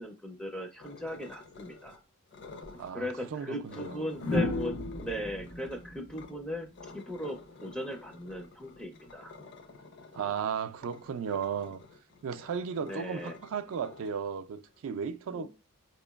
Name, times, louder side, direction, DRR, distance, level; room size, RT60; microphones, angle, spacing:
voice 1, 0.0-2.0 2.9-6.7 6.9-9.3 12.9-13.4 15.3-15.5, equal, 5° left, 0.4 m, -38 dB
sound 1, 0.8-2.0 2.3-2.9 3.6-6.3 6.7-14.8, left 3 dB, 50° left, 0.5 m, -51 dB
sound 2, 2.6-2.8 4.2-7.2 8.8-9.1, left 2 dB, 85° left, 1.0 m, -34 dB
voice 2, 2.7-4.1 10.1-11.8 12.2-15.5, right 7 dB, 65° right, 0.3 m, -35 dB
4.4 x 2.9 x 2.3 m
head